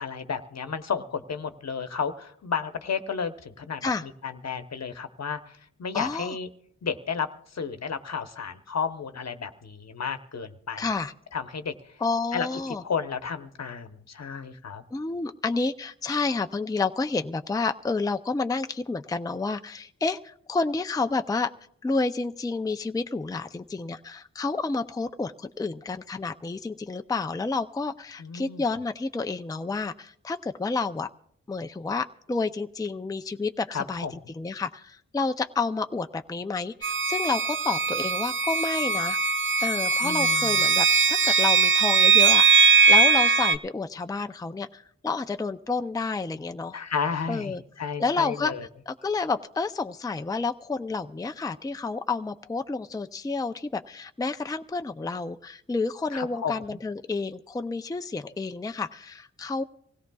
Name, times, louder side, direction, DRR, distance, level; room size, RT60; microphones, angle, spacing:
voice 1, 0.0-6.5 6.8-10.8 11.3-11.7 12.3-12.5 12.8-14.8 28.2-28.6 33.7-34.3 40.0-40.6 46.7-48.7 56.1-56.8, left 6 dB, 65° left, 9 dB, 1.0 m, -32 dB
voice 2, 5.9-6.4 10.8-11.1 12.0-12.8 14.9-21.5 21.8-31.1 31.5-34.1 34.3-39.2 39.6-46.8 47.3-47.6 48.0-48.5 48.9-59.6, left 4 dB, 15° left, 8 dB, 0.4 m, -30 dB
sound 1, 36.8-43.6, right 5 dB, 40° right, 0.6 m, -20 dB
25.5 x 16.5 x 2.3 m, 0.68 s
cardioid pair, 60°, 29 cm